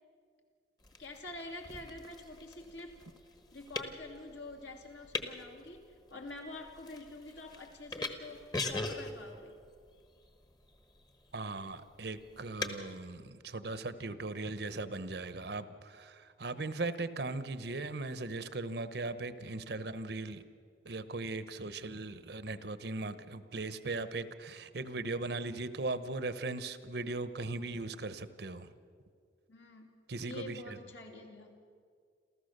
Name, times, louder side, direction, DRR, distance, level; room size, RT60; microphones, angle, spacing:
sound 1, 0.8-12.8, left 3 dB, 20° left, 1.1 m, -43 dB
voice 1, 1.0-3.0 3.5-9.6 29.5-29.9 30.2-31.6, left 2 dB, 75° left, 2 dB, 2.7 m, -47 dB
voice 2, 11.3-20.4 20.8-28.7 30.1-30.8, right 3 dB, 60° right, 12 dB, 0.9 m, -38 dB
28.0 x 14.0 x 6.6 m, 2.1 s
head